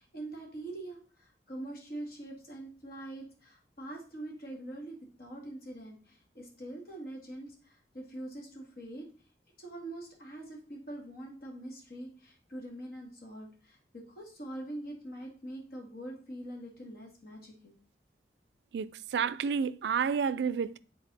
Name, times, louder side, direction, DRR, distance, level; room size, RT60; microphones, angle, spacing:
voice 1, 0.0-9.1 9.6-17.7, right 1 dB, 55° left, 1.8 m, -44 dB
voice 2, 18.7-20.8, right 6 dB, 75° right, 0.3 m, -30 dB
7.3 x 4.1 x 4.0 m
head